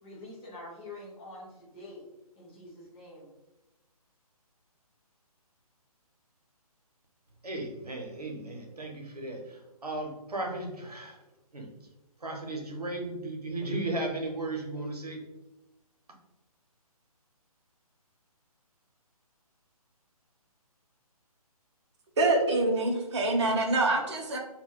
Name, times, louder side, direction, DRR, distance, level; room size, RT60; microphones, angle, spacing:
voice 1, 0.0-2.1 2.4-3.3, left 2 dB, 15° left, -5 dB, 0.5 m, -46 dB
voice 2, 7.4-11.2 11.5-11.7 12.2-15.2, right 2 dB, 80° right, 2 dB, 0.7 m, -35 dB
voice 3, 22.2-24.4, right 2 dB, 45° right, 1 dB, 0.6 m, -25 dB
2.3 x 2.2 x 3.5 m, 1.0 s
figure-of-eight pair, 140°, 19 cm